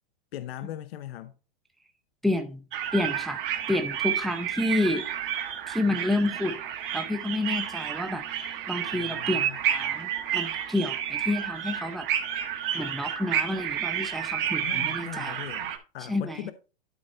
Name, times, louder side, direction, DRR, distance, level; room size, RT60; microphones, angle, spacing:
voice 1, 0.3-1.3 8.9-9.6 14.6-16.5, left 12 dB, 70° left, 0.8 m, -39 dB
voice 2, 2.2-2.6 2.9-3.4 3.7-5.0 5.7-6.6 6.9-9.4 9.7-12.1 12.7-15.4 16.1-16.5, left 1 dB, ahead, 0.6 m, -29 dB
sound 1, 2.7-15.8, right 9 dB, 55° right, 1.6 m, -31 dB
12.0 x 4.1 x 4.2 m
hypercardioid pair, 140°, 31 cm